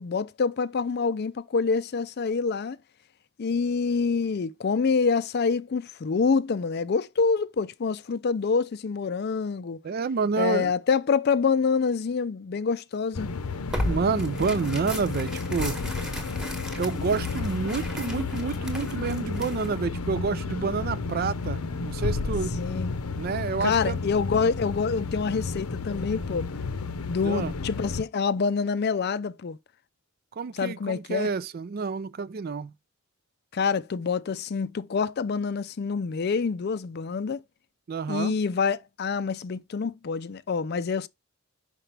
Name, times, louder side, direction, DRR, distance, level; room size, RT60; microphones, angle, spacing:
voice 1, 0.0-2.8 3.4-9.8 10.4-13.3 22.6-23.0 23.6-26.5 27.1-29.6 30.5-31.3 33.5-37.4 38.1-41.1, left 5 dB, 45° left, 0.4 m, -26 dB
voice 2, 9.8-10.7 13.9-15.8 16.8-22.6 23.2-24.0 27.2-27.5 30.4-32.7 37.9-38.3, right 5 dB, 45° right, 0.3 m, -29 dB
sound 1, 13.1-28.0, left 4 dB, 90° left, 0.7 m, -32 dB
Tearing, 13.7-19.8, left 1 dB, ahead, 1.2 m, -36 dB
5.8 x 4.9 x 3.3 m
head